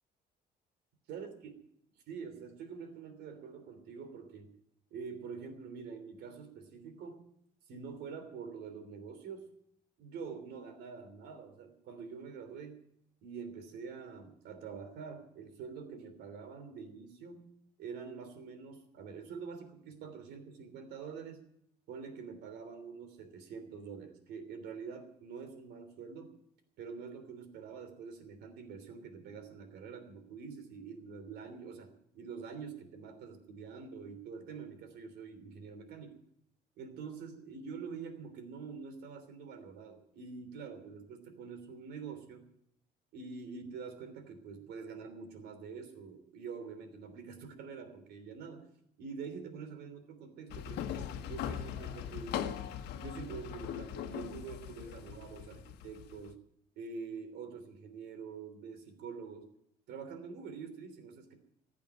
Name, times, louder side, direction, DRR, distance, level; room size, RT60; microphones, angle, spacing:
voice 1, 2.1-4.5 4.9-7.2 7.7-9.5 10.0-12.8 13.2-17.5 17.8-21.4 21.9-26.3 26.8-31.9 32.1-36.2 36.8-42.4 43.1-48.7 49.0-52.5 52.9-56.4 56.7-59.5 59.9-61.3, right 5 dB, 80° right, 8 dB, 3.2 m, -46 dB
sound 1, 50.5-56.3, left 10 dB, 80° left, 1.3 m, -40 dB
15.0 x 8.6 x 9.2 m, 0.73 s
cardioid pair, 110°, 17 cm